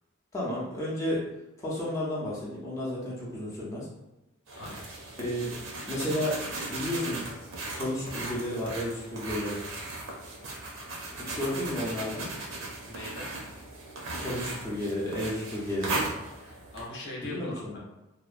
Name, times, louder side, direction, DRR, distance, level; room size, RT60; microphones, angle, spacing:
voice 1, 0.3-1.2 1.6-3.9 5.2-5.5 5.9-6.4 6.7-7.2 7.7-9.6 11.4-12.3 14.2-16.1 17.2-17.8, left 1 dB, 15° left, -7 dB, 0.5 m, -32 dB
voice 2, 4.5-4.9 12.9-13.3 16.7-17.8, left 2 dB, 55° left, -3 dB, 0.6 m, -40 dB
sound 1, 4.5-16.9, right 2 dB, 60° right, 0.5 m, -37 dB
2.7 x 2.0 x 2.4 m, 0.98 s
head